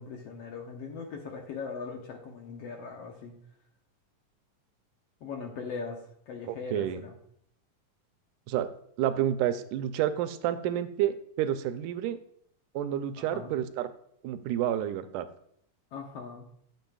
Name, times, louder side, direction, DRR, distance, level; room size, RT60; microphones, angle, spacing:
voice 1, 0.0-3.3 5.2-6.0 6.3-7.1 13.2-13.5 15.9-16.5, left 5 dB, 65° left, 2 dB, 1.7 m, -40 dB
voice 2, 6.5-7.0 8.5-8.7 9.0-12.2 12.8-13.9 14.2-15.3, right 11 dB, 85° right, 10 dB, 2.1 m, -29 dB
12.0 x 7.5 x 2.3 m, 0.70 s
omnidirectional pair, 3.6 m